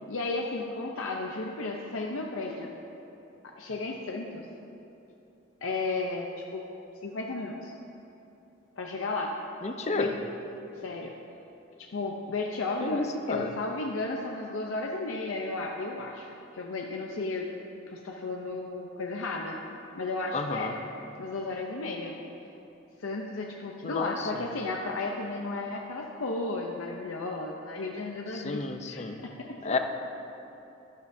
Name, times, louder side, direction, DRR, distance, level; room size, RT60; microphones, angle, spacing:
voice 1, 0.0-2.7 3.4-4.4 5.6-6.6 7.0-7.7 8.8-9.3 10.0-10.1 10.8-11.1 11.8-16.3 16.5-17.5 17.9-19.6 19.9-20.7 21.2-22.2 23.0-29.8, left 3 dB, 90° left, 0 dB, 0.6 m, -34 dB
voice 2, 9.6-10.1 12.8-13.5 20.3-20.7 23.8-24.3 28.3-29.2 29.6-29.8, left 3 dB, 35° left, 6 dB, 0.5 m, -31 dB
12.0 x 11.5 x 2.7 m, 3.0 s
head